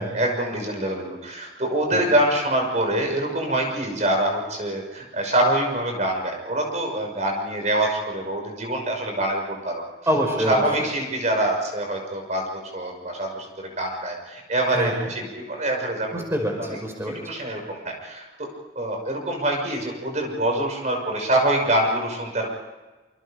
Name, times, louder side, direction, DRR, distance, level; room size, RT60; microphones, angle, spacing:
voice 1, 0.0-9.7 10.5-16.2 16.7-16.8 17.3-18.5 18.7-22.5, right 1 dB, 40° right, 2 dB, 6.1 m, -25 dB
voice 2, 10.1-10.9 14.7-15.1 16.1-17.2, equal, 15° right, 1 dB, 5.5 m, -26 dB
27.5 x 26.5 x 5.2 m, 1.2 s
head